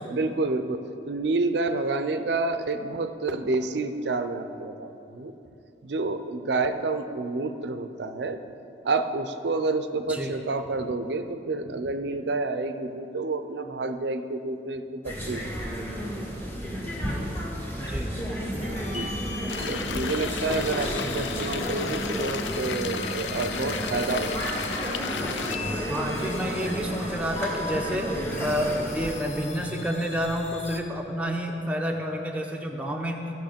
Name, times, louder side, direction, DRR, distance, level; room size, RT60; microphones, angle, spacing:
voice 1, 0.1-5.3 5.8-8.4 8.8-15.5 18.8-19.1 19.7-24.5, right 3 dB, 70° right, 9 dB, 0.6 m, -29 dB
sound 1, 15.0-29.2, equal, 15° left, 1.6 m, -32 dB
voice 2, 17.8-18.1 21.0-21.2 25.9-28.1 28.4-33.2, equal, 10° right, 1 dB, 0.8 m, -29 dB
sound 2, 18.5-30.8, left 2 dB, 35° left, 0.9 m, -37 dB
sound 3, 19.5-25.6, left 7 dB, 80° left, 0.4 m, -35 dB
15.5 x 6.2 x 5.2 m, 2.9 s
head